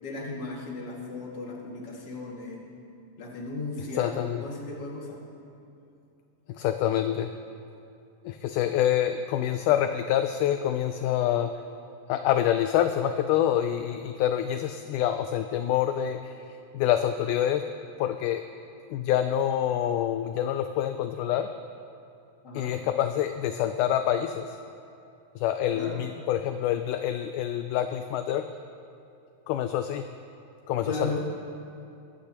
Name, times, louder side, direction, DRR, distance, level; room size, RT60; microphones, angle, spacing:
voice 1, 0.0-2.6 3.2-5.2 22.4-22.7 25.7-26.0 30.8-31.2, left 3 dB, 35° left, -3 dB, 2.3 m, -36 dB
voice 2, 3.8-4.4 6.5-7.3 8.2-11.5 12.1-16.4 16.7-17.6 18.0-18.4 18.9-21.5 22.5-24.6 25.4-28.5 29.5-30.1 30.7-31.2, left 11 dB, 80° left, 8 dB, 1.9 m, -26 dB
21.5 x 15.0 x 3.0 m, 2.6 s
omnidirectional pair, 3.9 m